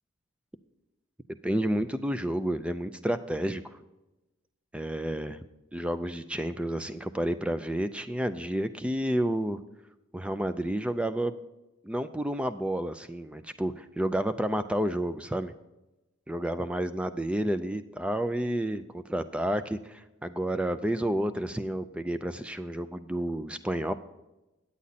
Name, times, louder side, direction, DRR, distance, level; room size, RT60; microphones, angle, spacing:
voice 1, 1.4-3.6 4.7-5.5 5.7-9.6 10.1-11.3 11.8-15.5 16.3-23.9, right 1 dB, 5° right, 11 dB, 0.3 m, -30 dB
9.9 x 8.4 x 4.1 m, 0.99 s
head